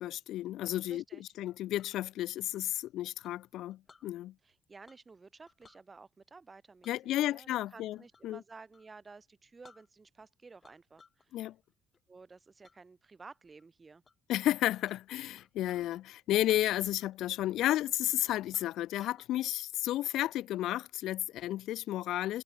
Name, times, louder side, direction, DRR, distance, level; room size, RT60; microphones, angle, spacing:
voice 1, 0.0-1.0 1.4-4.3 6.9-8.0 8.2-8.4 11.3-11.5 14.3-22.4, left 14 dB, 60° left, 0.5 m, -32 dB
voice 2, 0.8-1.2 4.4-11.4 12.1-14.0, right 4 dB, 20° right, 4.7 m, -54 dB
Chink clink, 1.5-2.0 3.2-4.1 4.8-5.2 5.5-5.8 6.8-8.4 8.7-8.9 9.3-9.4 9.6-10.3 10.6-11.3 11.6-12.0 12.6-12.8 13.3-13.7 14.0-14.1 14.4-16.0 16.4-17.2 17.5-17.6 18.1-18.2 18.5-19.3, left 4 dB, 20° left, 6.6 m, -63 dB
cardioid pair, 155°, 0 cm